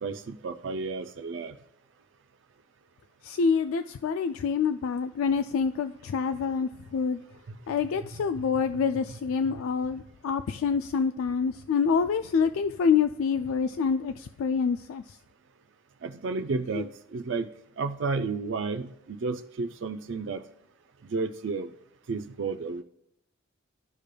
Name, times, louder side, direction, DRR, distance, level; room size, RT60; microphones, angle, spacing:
voice 1, 0.0-1.6 7.5-7.6 8.4-8.5 16.0-17.5 17.8-20.4 21.0-21.7 22.1-22.8, right 4 dB, 60° right, 6 dB, 0.4 m, -32 dB
voice 2, 3.2-7.2 7.7-15.2 16.7-16.9, left 6 dB, 80° left, 9 dB, 0.3 m, -27 dB
13.0 x 4.9 x 2.2 m, 0.76 s
head